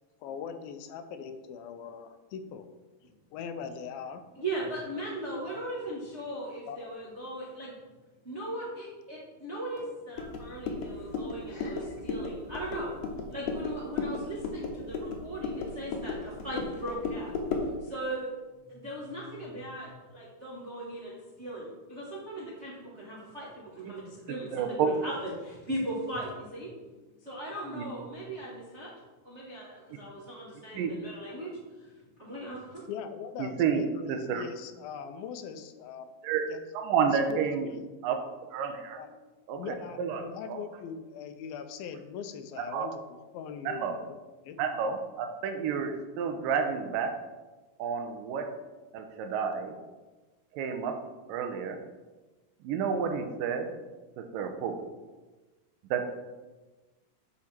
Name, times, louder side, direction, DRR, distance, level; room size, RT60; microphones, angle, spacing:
voice 1, 0.2-2.7 3.3-4.2 5.5-5.6 6.7-6.9 32.9-36.1 36.5-36.6 37.3-37.9 39.0-39.3 39.6-43.0 43.3-44.2 44.5-44.6, left 7 dB, 80° left, 9 dB, 2.5 m, -41 dB
voice 2, 4.4-7.7 8.2-12.9 13.3-18.3 18.7-26.7 27.2-28.9 29.2-31.5 32.2-32.8, right 1 dB, 40° right, -6 dB, 0.9 m, -38 dB
sound 1, 10.2-17.8, left 4 dB, 65° left, 2.1 m, -35 dB
voice 3, 24.5-24.9 27.7-27.9 30.7-30.9 33.4-33.8 34.1-34.4 36.2-36.5 36.7-37.7 38.0-38.2 38.5-39.0 39.5-40.2 40.5-40.6 42.6-42.9 43.7-44.0 44.6-47.1 47.8-48.5 48.9-49.8 50.5-51.0 51.3-51.8 52.6-53.7 54.2-54.8 55.9-56.1, right 6 dB, 75° right, 6 dB, 2.3 m, -30 dB
9.7 x 6.1 x 4.4 m, 1.2 s
omnidirectional pair, 4.3 m